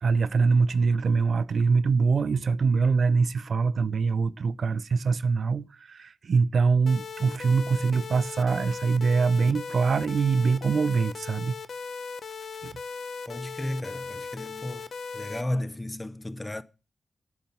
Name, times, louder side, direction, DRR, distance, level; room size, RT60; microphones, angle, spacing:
voice 1, 0.0-11.5 12.6-12.7, right 4 dB, 65° right, 0.4 m, -24 dB
sound 1, 6.9-15.4, left 5 dB, 70° left, 0.7 m, -38 dB
voice 2, 13.3-14.9 15.1-16.6, left 1 dB, 15° left, 0.6 m, -33 dB
9.1 x 5.9 x 5.4 m
wide cardioid pair, 90°, 0 cm